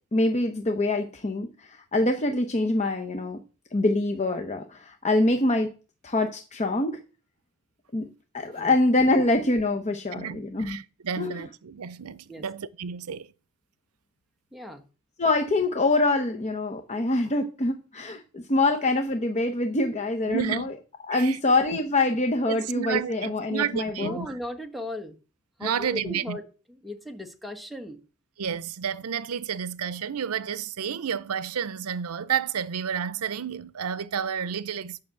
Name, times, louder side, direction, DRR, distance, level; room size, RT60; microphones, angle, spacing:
voice 1, 0.1-3.4 3.7-5.7 6.0-7.0 7.9-8.1 8.3-10.8 11.2-11.4 15.2-20.7 21.1-24.2, left 2 dB, 30° left, 0.9 m, -25 dB
voice 2, 10.1-13.3 20.3-20.7 21.1-21.4 21.7-21.8 22.5-24.3 25.6-26.4 28.4-35.0, right 7 dB, 85° right, 0.6 m, -31 dB
voice 3, 14.5-14.8 24.0-25.2 25.6-26.4 26.8-28.0, left 1 dB, ahead, 1.3 m, -36 dB
9.7 x 6.0 x 7.6 m
head